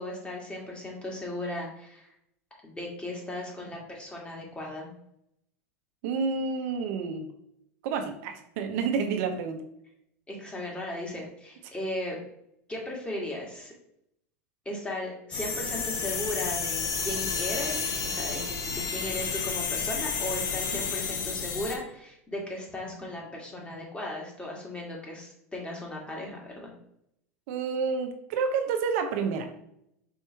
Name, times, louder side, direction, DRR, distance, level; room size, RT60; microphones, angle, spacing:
voice 1, 0.0-2.1 2.6-4.9 10.3-12.2 12.7-13.7 14.6-18.4 18.9-26.7, left 1 dB, 15° left, -2 dB, 1.6 m, -36 dB
voice 2, 6.0-7.3 7.8-9.6 20.7-20.8 27.5-29.6, right 5 dB, 65° right, 6 dB, 0.7 m, -29 dB
sound 1, 15.3-21.8, left 5 dB, 45° left, 1.0 m, -31 dB
4.6 x 2.9 x 3.3 m, 0.76 s
hypercardioid pair, 90°, 8 cm